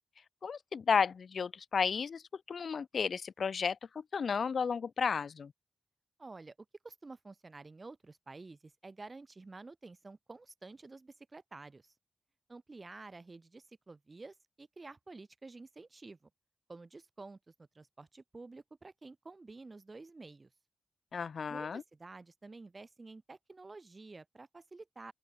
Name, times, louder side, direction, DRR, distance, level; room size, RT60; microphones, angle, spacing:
voice 1, 0.4-2.2 2.5-5.5 21.1-21.8, left 6 dB, 80° left, 1.6 m, -33 dB
voice 2, 6.2-6.5 6.8-11.9 12.5-16.3 16.7-20.5 21.5-25.1, right 3 dB, 40° right, 7.7 m, -50 dB
open air
wide cardioid pair, 90°, 0 cm